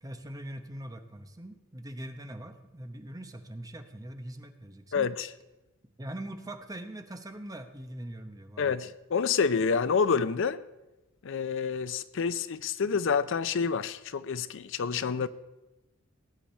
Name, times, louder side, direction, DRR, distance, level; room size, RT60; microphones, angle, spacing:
voice 1, 0.0-5.1 6.0-8.8, right 1 dB, 15° right, 0.9 m, -42 dB
voice 2, 4.9-5.3 8.6-10.6 11.2-15.3, left 5 dB, 60° left, 0.5 m, -28 dB
19.0 x 8.7 x 4.4 m
head